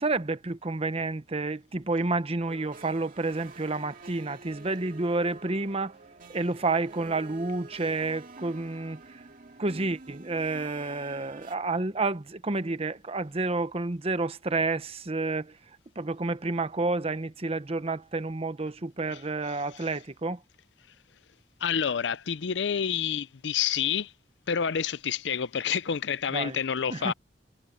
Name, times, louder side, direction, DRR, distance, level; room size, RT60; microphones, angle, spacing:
voice 1, 0.0-6.0 6.3-9.2 9.6-15.6 16.0-20.4 26.3-26.6 26.9-27.1, right 3 dB, 35° right, 0.9 m, -30 dB
sound 1, 2.5-11.6, right 3 dB, 50° right, 2.4 m, -48 dB
voice 2, 19.5-19.9 21.6-24.1 24.5-27.1, left 7 dB, 70° left, 0.5 m, -29 dB
head